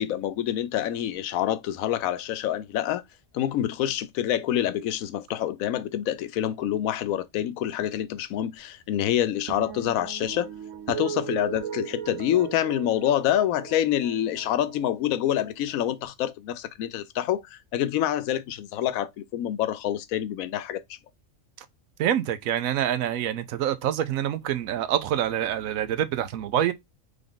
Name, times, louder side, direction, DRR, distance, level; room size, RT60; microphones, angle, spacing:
voice 1, 0.0-3.0 3.3-10.5 10.9-21.0, left 11 dB, 85° left, 1.0 m, -27 dB
sound 1, 9.5-16.1, right 9 dB, 70° right, 1.1 m, -38 dB
voice 2, 22.0-26.7, right 10 dB, 90° right, 1.0 m, -26 dB
3.5 x 3.5 x 3.7 m
omnidirectional pair, 1.4 m